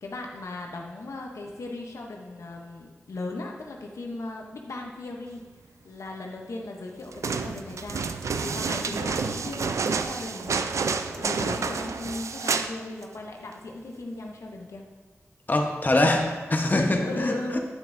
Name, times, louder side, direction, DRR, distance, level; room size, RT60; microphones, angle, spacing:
voice 1, 0.0-5.4 5.8-10.8 11.1-14.8 16.7-17.6, left 2 dB, 85° left, 1 dB, 0.7 m, -37 dB
sound 1, 7.1-12.7 13.0-13.1, right 5 dB, 85° right, 0.3 m, -29 dB
voice 2, 15.5-17.6, left 2 dB, 35° left, 2 dB, 0.9 m, -24 dB
9.1 x 6.6 x 2.5 m, 1.3 s
cardioid pair, 50°, 5 cm